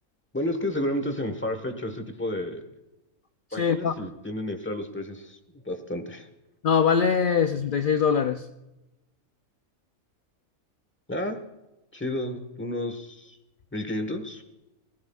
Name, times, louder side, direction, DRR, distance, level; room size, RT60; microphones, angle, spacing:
voice 1, 0.3-2.6 3.5-5.4 5.6-6.3 11.1-11.4 11.9-13.4 13.7-14.4, left 1 dB, 10° left, 7 dB, 1.1 m, -31 dB
voice 2, 3.5-4.0 6.6-8.5, left 6 dB, 60° left, 8 dB, 0.5 m, -22 dB
19.5 x 16.0 x 2.4 m, 0.97 s
omnidirectional pair, 1.4 m